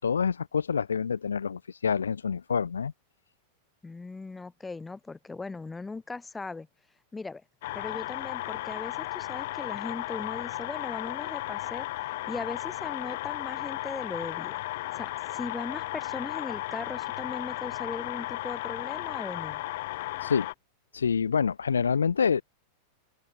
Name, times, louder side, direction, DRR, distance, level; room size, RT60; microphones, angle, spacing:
voice 1, 0.0-2.9 20.2-20.5 20.9-22.4, left 6 dB, 70° left, 0.4 m, -27 dB
voice 2, 3.8-6.7 7.1-7.4 7.7-14.6 14.9-19.6, left 3 dB, 10° left, 1.8 m, -39 dB
sound 1, 7.6-20.5, left 18 dB, 50° left, 0.9 m, -35 dB
figure-of-eight pair, 90°, 0 cm